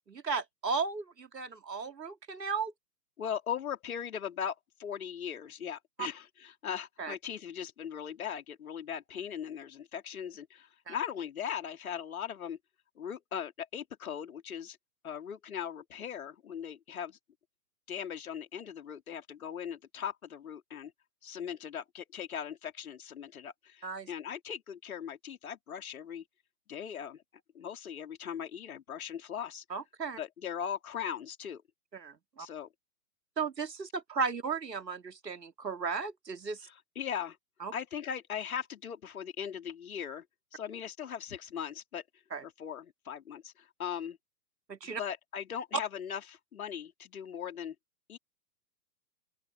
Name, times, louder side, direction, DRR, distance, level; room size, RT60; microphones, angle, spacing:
voice 1, 0.1-2.7 6.0-6.1 7.0-7.1 10.9-11.0 23.8-24.1 29.7-30.2 31.9-32.5 33.4-36.7 37.6-37.7 42.3-42.4 44.7-45.0, right 5 dB, 75° right, 2.3 m, -35 dB
voice 2, 3.2-12.6 13.0-14.8 15.0-17.2 17.9-20.9 21.2-26.2 26.7-27.2 27.5-29.6 30.2-31.6 32.4-32.7 36.6-37.4 37.7-40.2 40.5-42.0 42.4-44.2 44.8-47.7 48.1-48.2, left 8 dB, 60° left, 3.2 m, -39 dB
open air
figure-of-eight pair, 125°, 49 cm